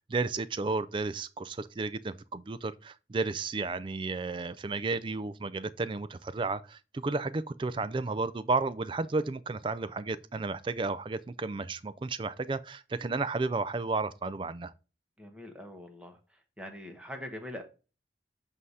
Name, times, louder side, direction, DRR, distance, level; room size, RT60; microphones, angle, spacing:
voice 1, 0.0-14.7, right 3 dB, 30° right, 0.3 m, -33 dB
voice 2, 15.2-16.2 16.6-17.6, left 1 dB, 5° right, 1.1 m, -42 dB
7.6 x 2.7 x 4.8 m
head